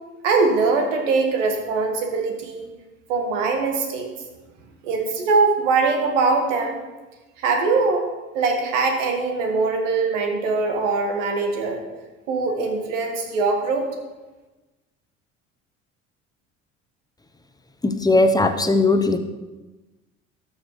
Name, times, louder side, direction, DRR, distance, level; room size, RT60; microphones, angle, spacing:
voice 1, 0.2-2.7 3.1-4.1 4.8-6.8 7.4-8.0 8.3-11.8 12.3-13.9, right 4 dB, 75° right, 3 dB, 1.7 m, -22 dB
voice 2, 17.8-19.2, left 2 dB, 10° left, 7 dB, 0.9 m, -18 dB
13.5 x 6.4 x 3.2 m, 1.1 s
hypercardioid pair, 65°, 37 cm